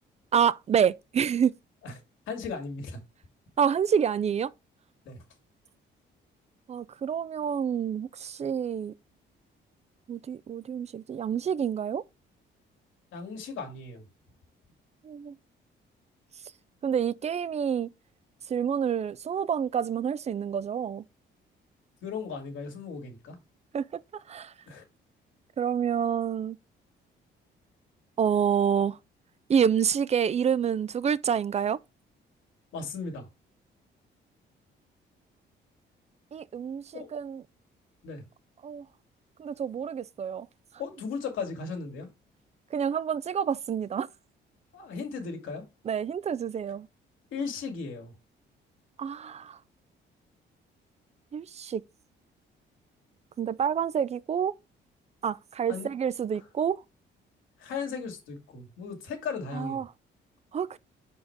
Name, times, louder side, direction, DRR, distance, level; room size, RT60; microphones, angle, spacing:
voice 1, 0.3-1.5 3.6-4.5 6.7-8.9 10.1-12.0 15.0-15.3 16.8-17.9 18.5-21.0 23.7-24.0 24.3-24.5 25.6-26.6 28.2-29.0 29.5-31.8 36.3-37.4 38.6-38.8 39.4-40.5 42.7-44.1 45.9-46.9 49.0-49.6 51.3-51.8 53.4-54.5 55.2-56.8 59.5-59.9 60.5-60.8, right 8 dB, 35° right, 0.4 m, -28 dB
voice 2, 2.3-3.0 5.1-5.2 13.1-14.0 22.0-23.4 24.7-24.8 32.7-33.3 36.9-37.1 38.0-38.2 40.8-42.1 44.7-45.7 47.3-48.1 55.7-55.9 57.6-59.8, left 5 dB, 80° left, 1.9 m, -36 dB
5.1 x 4.3 x 4.4 m
cardioid pair, 90°, 20 cm